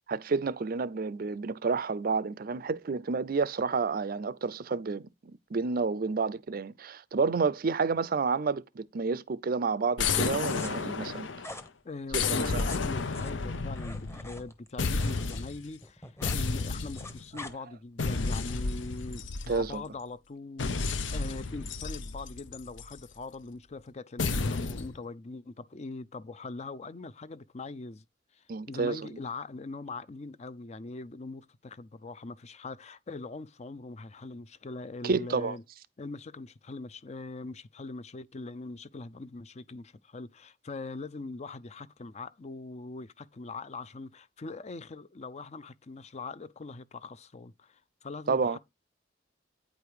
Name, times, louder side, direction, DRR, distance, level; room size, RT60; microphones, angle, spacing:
voice 1, 0.1-5.1 5.5-11.3 12.4-12.7 19.5-19.8 28.5-29.1 35.0-35.6 48.3-48.6, right 4 dB, 50° right, 0.5 m, -30 dB
sound 1, 10.0-11.6 12.1-14.5 14.8-15.6 16.2-17.3 18.0-19.9 20.6-23.0 24.2-24.9, left 4 dB, 90° left, 0.8 m, -32 dB
sound 2, 10.4-10.7 11.4-11.7 12.4-15.4 15.7-16.4 16.7-17.5 18.1-18.6, left 2 dB, 15° left, 0.9 m, -45 dB
voice 2, 11.8-28.0 28.3-35.6 36.0-48.6, left 3 dB, 35° left, 0.5 m, -42 dB
9.2 x 5.0 x 4.8 m
head